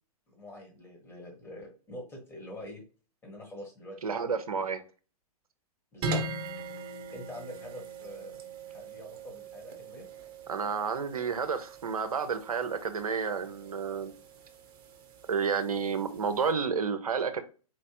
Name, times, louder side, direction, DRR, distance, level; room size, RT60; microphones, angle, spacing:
voice 1, 0.4-2.8 3.2-4.4 5.9-6.2 7.1-8.3 8.7-10.1, left 1 dB, 10° left, 0 dB, 1.4 m, -45 dB
voice 2, 4.0-4.8 10.5-14.1 15.3-17.4, right 6 dB, 65° right, 10 dB, 0.7 m, -30 dB
sound 1, 6.0-16.5, right 2 dB, 40° right, 1.0 m, -41 dB
4.5 x 3.1 x 2.9 m, 0.36 s
figure-of-eight pair, 110°, 20 cm